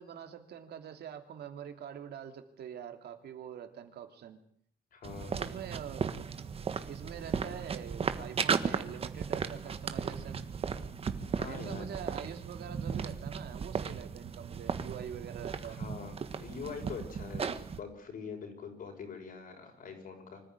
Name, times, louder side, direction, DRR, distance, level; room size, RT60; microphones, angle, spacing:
voice 1, 0.0-4.4 5.4-6.1 6.9-10.5 11.5-15.8, right 8 dB, 90° right, 6 dB, 2.9 m, -44 dB
voice 2, 4.9-5.4 11.3-11.9 15.7-20.4, left 5 dB, 60° left, 3 dB, 6.8 m, -44 dB
sound 1, 5.0-17.8, right 6 dB, 35° right, 1.4 m, -36 dB
25.0 x 15.0 x 9.6 m, 0.65 s
wide cardioid pair, 180°, 16 cm